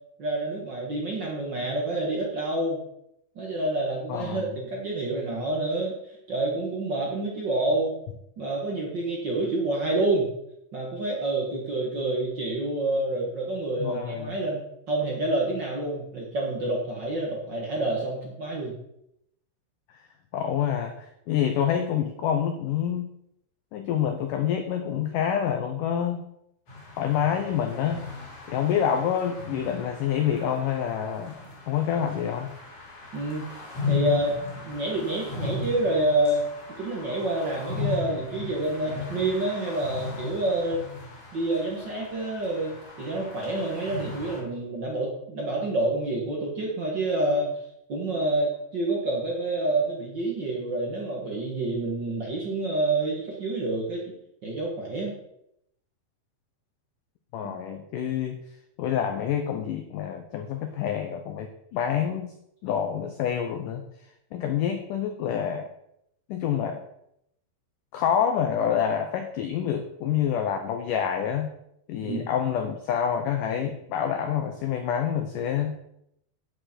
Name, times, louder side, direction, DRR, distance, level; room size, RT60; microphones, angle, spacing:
voice 1, 0.2-2.8 3.3-5.9 6.3-7.9 8.4-10.3 10.7-14.6 14.9-18.7 33.1-33.4 33.9-34.4 34.6-36.4 36.8-40.8 41.3-47.5 47.9-54.0 54.4-55.2 72.0-72.2, right 2 dB, 85° right, -2 dB, 0.9 m, -28 dB
voice 2, 4.1-4.5 13.8-14.3 19.9-20.0 20.3-23.1 23.7-26.3 27.0-28.1 28.5-31.4 31.7-32.5 57.3-58.4 58.8-62.3 62.6-63.8 64.3-65.7 66.3-66.8 67.9-71.5 71.9-75.7, left 8 dB, 85° left, 5 dB, 1.8 m, -27 dB
sound 1, 26.7-44.4, left 4 dB, 40° left, 3.0 m, -37 dB
9.1 x 9.0 x 4.4 m, 0.78 s
omnidirectional pair, 4.7 m